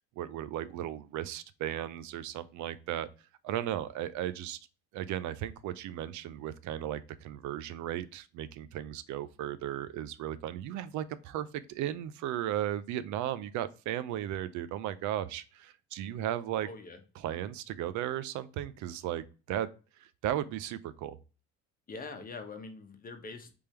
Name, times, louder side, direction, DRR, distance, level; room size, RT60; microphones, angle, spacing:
voice 1, 0.0-3.1 3.4-4.6 4.9-16.7 17.2-19.7 20.0-21.2, right 12 dB, 70° right, 0.5 m, -36 dB
voice 2, 16.6-17.0 21.9-23.5, left 3 dB, 30° left, 0.9 m, -43 dB
3.5 x 3.4 x 4.3 m
cardioid pair, 110°, 30 cm